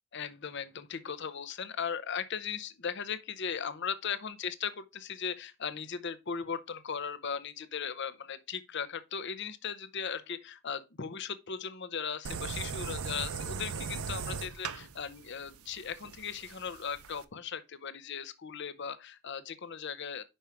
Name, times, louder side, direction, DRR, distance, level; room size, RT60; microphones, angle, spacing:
voice 1, 0.1-20.2, left 6 dB, 50° left, 0.7 m, -38 dB
sound 1, 12.2-17.2, right 5 dB, 80° right, 0.7 m, -38 dB
5.7 x 5.4 x 4.7 m
head